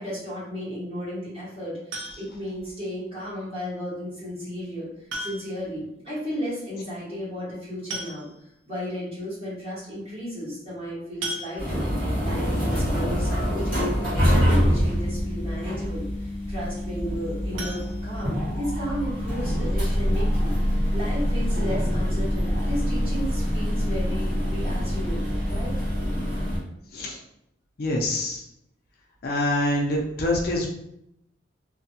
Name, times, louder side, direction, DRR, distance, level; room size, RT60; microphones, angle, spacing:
voice 1, 0.0-4.9 5.2-8.3 8.7-25.7, equal, 30° right, -9 dB, 1.3 m, -34 dB
sound 1, 1.9-2.5 4.0-4.1 5.1-5.7 6.0-6.1 6.4-6.5 7.5-7.6 7.9-8.6 9.2-9.3 9.6-9.8 11.2-12.0 17.5-18.7 19.1-19.2 19.6-19.7 20.1-20.2, right 1 dB, 80° right, 0.6 m, -36 dB
sound 2, 11.6-26.6, equal, 50° right, 1.4 m, -25 dB
sound 3, 11.8-24.3, equal, 15° right, 0.7 m, -35 dB
voice 2, 27.8-28.4 29.2-30.7, left 1 dB, 50° left, -1 dB, 0.4 m, -25 dB
2.5 x 2.2 x 2.7 m, 0.79 s
head